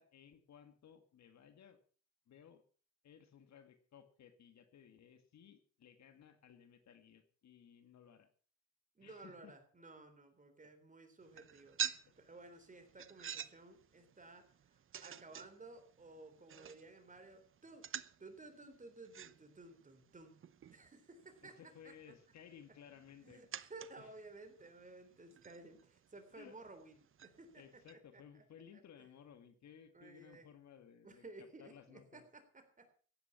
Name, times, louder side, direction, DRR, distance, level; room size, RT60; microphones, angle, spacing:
voice 1, 0.0-1.8 2.3-2.6 3.0-8.3 9.0-9.6 21.4-23.5 24.0-24.1 26.4-26.6 27.6-32.2, left 8 dB, 65° left, 9 dB, 2.1 m, -59 dB
voice 2, 9.0-17.9 18.2-20.4 20.7-21.6 21.8-21.9 23.2-27.8 28.1-28.4 29.0-29.1 29.9-30.5 31.0-32.9, right 2 dB, 25° right, 7 dB, 3.7 m, -56 dB
sound 1, 11.2-28.0, right 8 dB, 45° right, 0.8 m, -50 dB
15.5 x 10.0 x 6.0 m, 0.42 s
cardioid pair, 90°, 30 cm